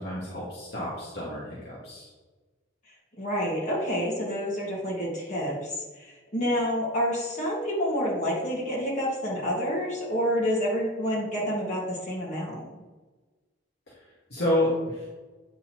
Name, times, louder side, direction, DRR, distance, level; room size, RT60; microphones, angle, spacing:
voice 1, 0.0-2.1 13.9-15.1, left 1 dB, 55° left, -6 dB, 1.6 m, -30 dB
voice 2, 3.2-12.7, equal, 40° left, -4 dB, 2.3 m, -28 dB
8.3 x 4.0 x 4.5 m, 1.3 s
head